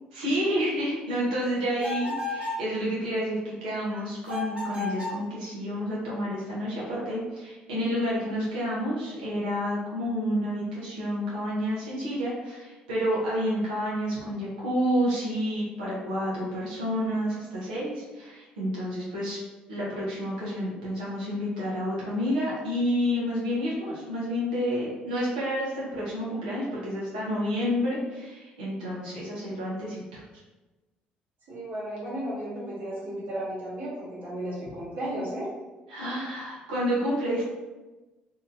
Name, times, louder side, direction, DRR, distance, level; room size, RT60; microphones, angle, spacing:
voice 1, 0.1-19.4 19.7-30.2 35.9-37.4, equal, 90° right, -7 dB, 0.8 m, -29 dB
sound 1, 1.8-2.6 4.2-5.2, left 2 dB, 25° right, 1.0 m, -32 dB
voice 2, 31.5-35.5, right 1 dB, 70° right, -14 dB, 1.4 m, -34 dB
2.8 x 2.5 x 2.4 m, 1.2 s
hypercardioid pair, 55°, 4 cm